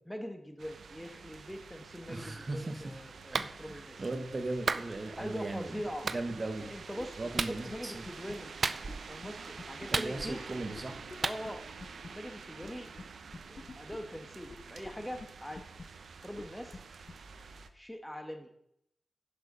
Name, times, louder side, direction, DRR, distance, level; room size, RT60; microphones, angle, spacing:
voice 1, 0.1-4.0 5.2-6.1 6.7-8.5 9.0-10.4 11.2-11.6 12.1-12.9 13.5-15.6 16.2-16.8 17.7-18.5, equal, 5° left, 5 dB, 1.4 m, -42 dB
sound 1, 0.6-17.7, right 5 dB, 80° right, 0.8 m, -48 dB
voice 2, 2.1-2.8 3.3-5.8 6.1-6.7 7.2-8.0 9.9-11.0, right 2 dB, 40° right, 6 dB, 1.3 m, -38 dB
Clapping, 3.3-3.5 4.7-4.9 6.1-6.2 7.4-7.6 8.6-9.1 9.9-10.5 11.2-11.4, right 4 dB, 55° right, 0.5 m, -32 dB
sound 2, 7.0-7.1 7.3-7.4 7.7-7.8 8.1-8.3 8.9-9.0 9.2-9.3 9.6-10.2 10.7-10.8 11.1-11.2 11.5-11.6 11.8-12.1 12.6-12.7 13.0-13.1 13.3-14.0 14.5-14.6 14.8-14.9 15.2-15.3 15.6-15.8 16.4-16.5 16.7-16.8 17.1-17.2, left 3 dB, 40° left, 1.1 m, -45 dB
10.0 x 6.7 x 5.5 m, 0.75 s
cardioid pair, 75°, 0 cm